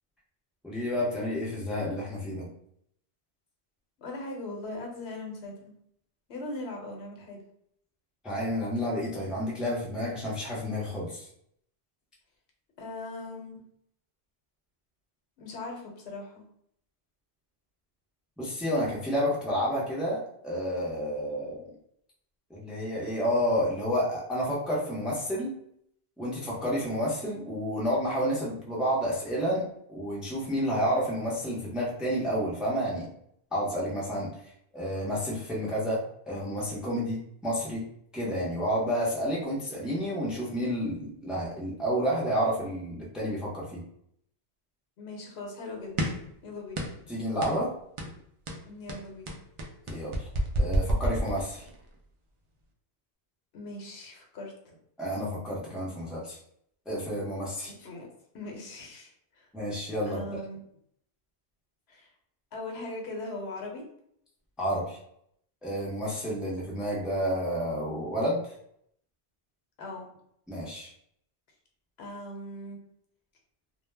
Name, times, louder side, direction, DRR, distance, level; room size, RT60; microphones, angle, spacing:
voice 1, 0.6-2.5 8.2-11.3 18.4-21.7 22.5-25.5 26.2-33.1 33.5-37.9 38.1-43.8 47.1-47.7 49.9-50.3 50.6-51.7 55.0-56.4 56.9-57.7 59.5-60.4 64.6-65.0 65.6-68.5 70.5-70.9, equal, ahead, -5 dB, 0.5 m, -30 dB
voice 2, 4.0-5.7 6.3-7.4 12.8-13.6 15.4-16.4 45.0-46.1 46.4-46.8 48.7-49.3 53.5-54.8 57.8-58.1 58.3-59.5 60.0-60.6 61.9-62.1 62.5-63.8 69.8-70.1 72.0-72.8, left 2 dB, 80° left, 1 dB, 0.9 m, -40 dB
sound 1, 46.0-46.3 46.8-47.1 47.4-47.6 48.0-48.2 48.5-51.8, right 1 dB, 60° right, 0.3 m, -29 dB
2.2 x 2.1 x 3.2 m, 0.71 s
omnidirectional pair, 1.1 m